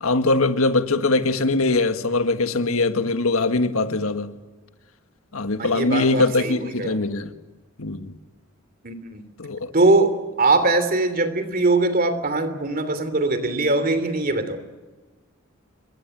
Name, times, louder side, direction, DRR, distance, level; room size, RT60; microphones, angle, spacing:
voice 1, 0.0-4.3 5.3-7.3 7.8-8.1 9.4-9.7, left 2 dB, 80° left, 1.7 m, -22 dB
voice 2, 5.6-7.0 8.8-9.2 9.7-14.6, right 2 dB, 45° right, 3.0 m, -21 dB
27.0 x 22.5 x 9.1 m
head